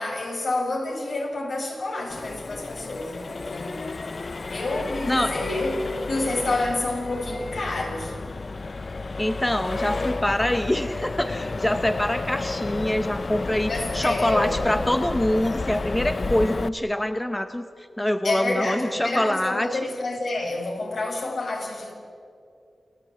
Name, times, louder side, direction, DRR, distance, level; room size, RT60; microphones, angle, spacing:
voice 1, 0.0-3.9 4.5-8.2 13.7-14.6 18.2-21.9, left 2 dB, 65° left, 0 dB, 6.4 m, -29 dB
Accelerating revving vroom, 2.1-16.7, left 3 dB, 45° left, 0.6 m, -31 dB
voice 2, 9.2-19.8, left 1 dB, 10° left, 8 dB, 0.9 m, -25 dB
29.0 x 17.0 x 9.1 m, 2.5 s
wide cardioid pair, 110°, 0 cm